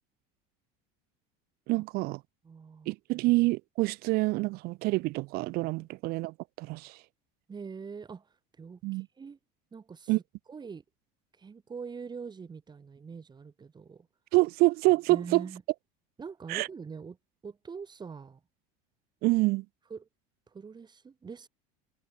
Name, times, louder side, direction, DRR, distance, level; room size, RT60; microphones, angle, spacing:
voice 1, 1.7-2.2 2.9-7.0 8.8-9.1 10.1-10.2 14.3-15.4 16.5-16.7 19.2-19.6, right 22 dB, 55° right, 0.4 m, -27 dB
voice 2, 2.4-2.9 7.5-8.3 8.6-9.4 9.7-10.1 10.5-10.8 11.4-14.1 15.1-15.6 16.2-17.2 17.4-18.4 19.9-20.1 20.5-21.5, right 5 dB, 20° right, 6.5 m, -43 dB
supercardioid pair, 120°, 19 cm